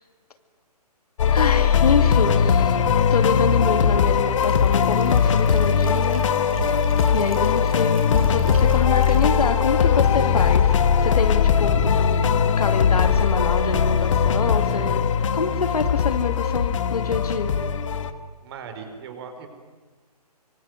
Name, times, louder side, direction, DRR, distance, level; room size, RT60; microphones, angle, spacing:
sound 1, 1.2-18.1, left 7 dB, 50° left, 1.7 m, -20 dB
voice 1, 1.3-2.8 3.1-6.2 7.1-10.7 11.0-15.1 15.3-17.5, left 4 dB, 65° left, 9 dB, 2.5 m, -26 dB
sound 2, 4.4-9.4, right 5 dB, 60° right, 3.7 m, -39 dB
voice 2, 6.6-7.2 18.4-19.5, right 6 dB, 40° right, 6 dB, 4.8 m, -40 dB
25.0 x 24.0 x 9.6 m, 1.4 s
figure-of-eight pair, 140°, 20 cm